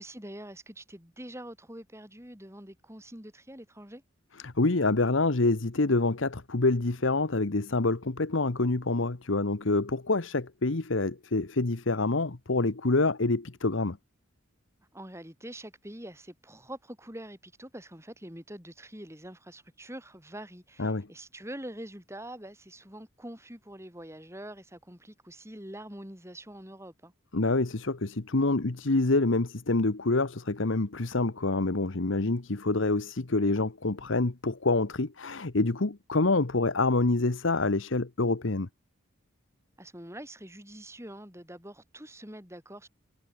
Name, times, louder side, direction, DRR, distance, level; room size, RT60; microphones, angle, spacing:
voice 1, 0.0-4.0 14.9-27.1 39.8-42.9, right 1 dB, 15° right, 7.0 m, -45 dB
voice 2, 4.4-14.0 20.8-21.1 27.3-38.7, left 2 dB, 70° left, 1.1 m, -26 dB
head